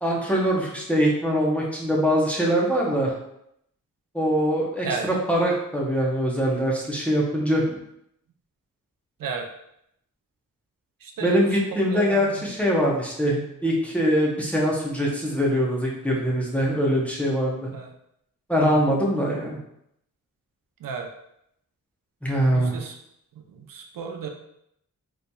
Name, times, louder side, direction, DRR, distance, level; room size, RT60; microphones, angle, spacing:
voice 1, 0.0-3.1 4.1-4.9 5.3-7.8 11.2-17.7 18.5-19.6 22.2-22.7, equal, 5° left, -4 dB, 0.6 m, -23 dB
voice 2, 11.0-12.4 17.7-17.9 18.6-18.9 20.8-21.1 22.5-22.9 23.3-24.3, right 5 dB, 90° right, 3 dB, 0.6 m, -34 dB
4.0 x 3.1 x 2.2 m, 0.76 s
wide cardioid pair, 160°, 33 cm